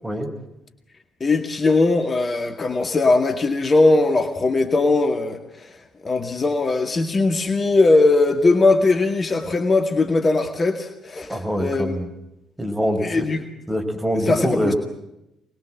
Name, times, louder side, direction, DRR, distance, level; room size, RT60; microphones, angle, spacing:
voice 1, 1.2-12.0 13.0-13.4 14.2-14.7, left 3 dB, 35° left, 6 dB, 2.0 m, -20 dB
voice 2, 11.3-12.1 12.6-13.3 13.7-14.8, equal, 10° right, 4 dB, 4.8 m, -24 dB
25.5 x 20.5 x 7.7 m, 0.88 s
figure-of-eight pair, 45°, 0 cm